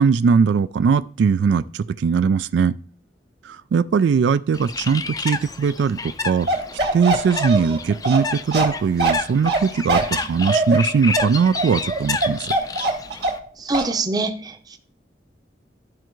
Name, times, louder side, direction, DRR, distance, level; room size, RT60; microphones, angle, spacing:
voice 1, 0.0-2.8 3.4-6.5 6.9-12.5, right 6 dB, 85° right, 0.3 m, -20 dB
Bird, 4.5-13.4, left 4 dB, 20° left, 0.4 m, -30 dB
Bark, 6.5-13.5 13.7-13.9, right 2 dB, 65° right, 1.9 m, -22 dB
voice 2, 13.6-14.8, right 3 dB, 20° right, 0.7 m, -25 dB
12.5 x 4.5 x 3.1 m
head